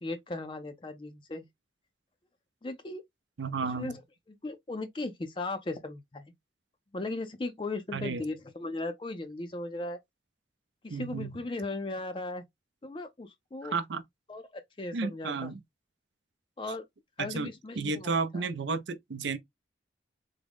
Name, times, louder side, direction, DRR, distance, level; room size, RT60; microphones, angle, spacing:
voice 1, 0.0-1.5 2.6-3.0 3.8-4.0 4.4-6.3 6.9-10.0 10.8-12.4 12.8-13.8 14.3-15.5 16.6-16.8 17.2-18.5, left 2 dB, 25° left, 0.4 m, -37 dB
voice 2, 3.4-4.0 7.9-8.2 10.9-11.3 13.6-14.0 14.9-15.6 17.2-17.5 17.8-19.4, right 4 dB, 80° right, 0.5 m, -32 dB
3.6 x 2.0 x 3.4 m
head